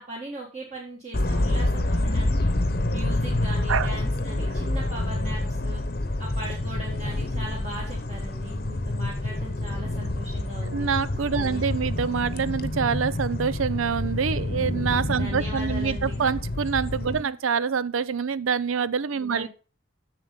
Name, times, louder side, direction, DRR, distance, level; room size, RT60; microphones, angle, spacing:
voice 1, 0.0-2.5 2.9-5.8 6.2-10.9 11.4-11.6 15.1-16.2 17.1-17.4 19.2-19.5, right 1 dB, 35° right, 1.8 m, -39 dB
sound 1, 1.1-17.2, left 1 dB, 50° left, 0.9 m, -27 dB
voice 2, 10.6-19.5, right 6 dB, 90° right, 0.5 m, -26 dB
7.6 x 6.7 x 5.2 m
head